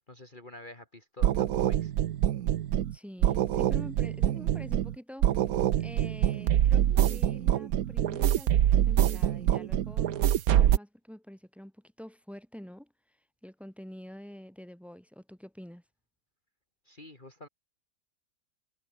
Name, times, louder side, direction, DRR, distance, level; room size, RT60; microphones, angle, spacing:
voice 1, 0.0-1.9 16.8-17.5, left 2 dB, 30° left, 2.7 m, -47 dB
sound 1, 1.2-3.0 3.2-5.0 5.2-10.8, right 11 dB, 65° right, 1.2 m, -25 dB
voice 2, 2.9-5.3 5.8-12.9 13.4-15.8, equal, ahead, 3.7 m, -47 dB
omnidirectional pair, 1.7 m